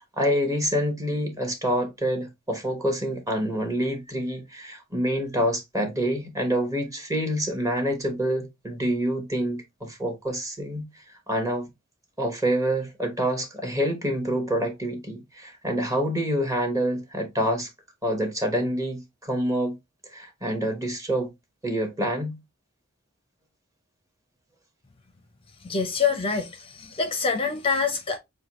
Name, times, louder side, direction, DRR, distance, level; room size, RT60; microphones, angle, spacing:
voice 1, 0.2-10.8 11.3-11.7 12.2-17.7 18.0-19.8 20.1-21.3 21.6-22.4, equal, 15° right, 1.1 m, -27 dB
voice 2, 25.6-28.2, left 5 dB, 25° left, 0.6 m, -26 dB
6.5 x 2.2 x 2.9 m
head